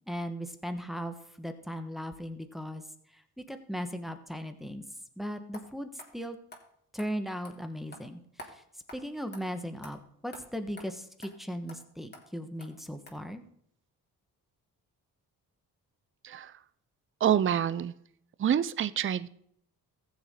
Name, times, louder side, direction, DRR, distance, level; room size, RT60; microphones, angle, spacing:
voice 1, 0.1-2.8 3.1-3.2 3.5-4.8 5.2-6.4 6.9-8.6 8.9-13.4, equal, ahead, 7 dB, 1.2 m, -38 dB
sound 1, 5.5-5.6 6.0-6.1 6.5-6.6 7.0-7.1 7.4-7.5 7.9-8.0 8.4-8.5 8.9-9.0 9.3-9.4 9.8-9.9 10.3-10.4 10.8-10.9 11.2-11.3 11.7-11.8 12.1-12.2 12.6-12.7 13.1-13.2, left 1 dB, 25° left, 2.7 m, -47 dB
voice 2, 17.2-17.9 18.4-19.3, right 9 dB, 35° right, 17 dB, 0.5 m, -27 dB
15.0 x 7.1 x 3.7 m, 0.69 s
cardioid pair, 70°, 38 cm